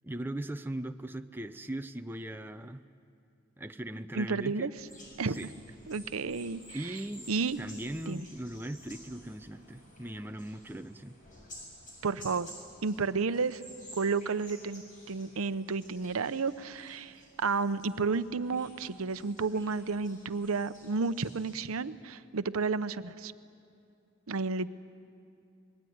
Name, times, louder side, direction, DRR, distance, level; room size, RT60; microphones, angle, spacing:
voice 1, 0.0-2.8 3.6-4.7 5.2-5.5 6.7-7.3 7.6-11.2, right 1 dB, 10° right, 8 dB, 0.5 m, -39 dB
voice 2, 4.2-4.7 5.2-5.4 5.9-7.0 7.3-7.6 8.1-8.3 12.0-12.5 12.8-13.6 14.0-14.8 15.1-23.3 24.3-24.7, right 4 dB, 85° right, 13 dB, 0.7 m, -31 dB
sound 1, 4.8-21.6, equal, 40° left, 7.6 m, -53 dB
26.0 x 21.0 x 9.4 m, 2.5 s
head